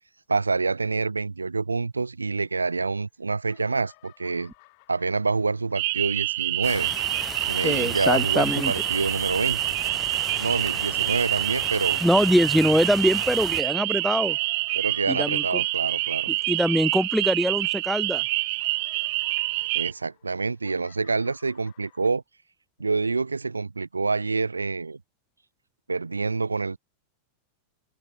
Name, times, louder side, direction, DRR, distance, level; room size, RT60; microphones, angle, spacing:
voice 1, 0.3-4.5 4.9-6.9 7.5-9.8 10.4-12.0 14.7-16.3 19.7-22.2 22.8-25.0 25.9-26.8, right 4 dB, 80° right, 0.8 m, -27 dB
sound 1, 2.4-3.1 3.4-6.6 7.2-17.8 18.0-22.1, left 30 dB, 45° left, 7.3 m, -57 dB
sound 2, 5.8-19.9, right 23 dB, 50° right, 1.1 m, -27 dB
sound 3, 6.6-13.6, left 7 dB, 20° left, 3.7 m, -38 dB
voice 2, 7.6-8.7 12.0-14.4 15.1-15.4 16.5-18.2, equal, ahead, 0.4 m, -23 dB
open air
figure-of-eight pair, 90°, 0 cm